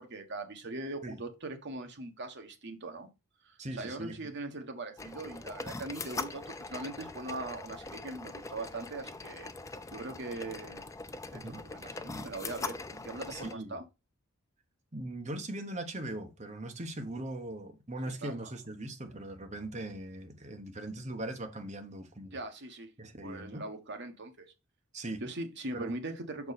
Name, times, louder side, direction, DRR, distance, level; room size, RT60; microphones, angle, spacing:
voice 1, 0.0-3.1 3.4-9.5 9.9-10.8 11.3-13.8 18.2-18.5 22.3-22.9 23.2-24.5 25.2-26.5, right 2 dB, 55° right, 1.3 m, -41 dB
voice 2, 3.6-4.2 11.3-11.6 13.3-13.8 14.9-22.4 23.0-23.6 24.9-25.2 25.7-25.9, right 1 dB, 35° right, 1.2 m, -40 dB
sound 1, 5.0-13.5, left 3 dB, 15° left, 0.4 m, -42 dB
6.4 x 4.6 x 4.1 m
head